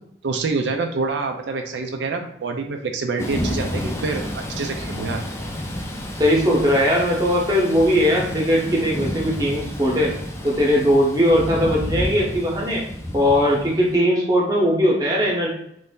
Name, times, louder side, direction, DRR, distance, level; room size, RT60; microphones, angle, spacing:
voice 1, 0.2-5.2, right 4 dB, 75° right, 4 dB, 0.4 m, -26 dB
Thunder / Rain, 3.2-13.9, equal, 15° left, 0.4 m, -30 dB
voice 2, 6.2-10.1 10.4-12.8 13.1-15.5, equal, 20° right, -2 dB, 0.8 m, -19 dB
3.1 x 2.6 x 3.6 m, 0.74 s
head